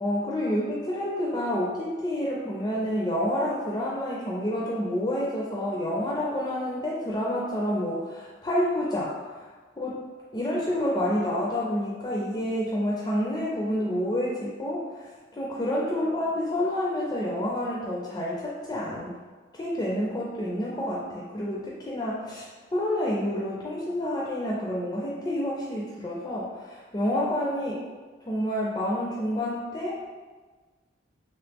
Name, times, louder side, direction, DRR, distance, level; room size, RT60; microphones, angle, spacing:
voice 1, 0.0-10.0 10.3-19.1 19.5-27.8 28.3-30.1, left 1 dB, 20° left, -5 dB, 0.4 m, -29 dB
3.0 x 3.0 x 3.4 m, 1.3 s
head